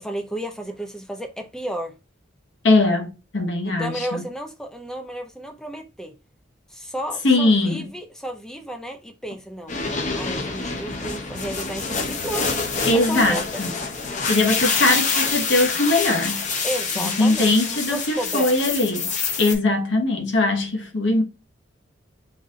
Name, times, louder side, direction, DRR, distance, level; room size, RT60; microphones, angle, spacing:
voice 1, 0.0-2.0 3.7-6.1 6.7-9.7 10.1-12.6 12.9-13.6 16.6-18.7, right 1 dB, 5° left, 0.6 m, -32 dB
voice 2, 2.6-3.1 3.3-4.2 7.2-7.9 12.9-13.7 14.3-16.5 17.0-19.1 19.4-21.2, left 2 dB, 65° left, 1.0 m, -20 dB
sound 1, 9.7-19.5, left 4 dB, 40° left, 0.7 m, -26 dB
4.0 x 2.6 x 3.6 m
head